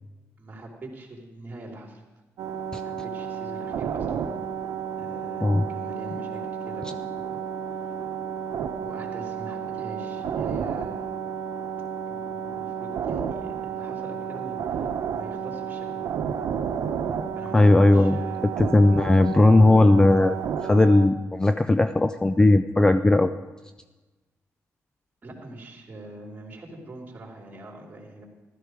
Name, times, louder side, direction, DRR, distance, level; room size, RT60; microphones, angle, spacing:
voice 1, 0.4-2.0 2.8-4.1 5.0-7.4 8.8-11.1 12.1-16.1 17.3-17.7 17.9-18.5 25.2-28.2, right 1 dB, 30° right, 0 dB, 3.3 m, -43 dB
sound 1, 2.4-21.1, right 7 dB, 90° right, 0.9 m, -31 dB
voice 2, 17.5-18.2 18.6-20.4 20.6-23.3, left 2 dB, 15° left, 10 dB, 0.4 m, -17 dB
15.0 x 13.0 x 4.9 m, 1.2 s
cardioid pair, 125°, 6 cm